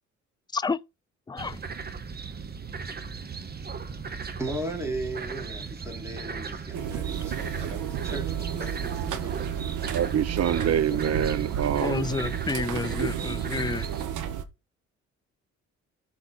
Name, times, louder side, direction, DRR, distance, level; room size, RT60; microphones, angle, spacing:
voice 1, 1.3-1.6 11.8-13.9, left 4 dB, 15° left, 0.4 m, -30 dB
sound 1, 1.4-14.0, right 5 dB, 30° right, 1.1 m, -37 dB
voice 2, 3.9-9.5, right 1 dB, 10° right, 3.1 m, -37 dB
sound 2, 6.7-14.4, right 9 dB, 80° right, 1.3 m, -32 dB
voice 3, 9.9-12.1 12.5-12.6 13.0-13.4, right 9 dB, 55° right, 0.8 m, -26 dB
13.5 x 4.4 x 4.3 m
cardioid pair, 90°, 30 cm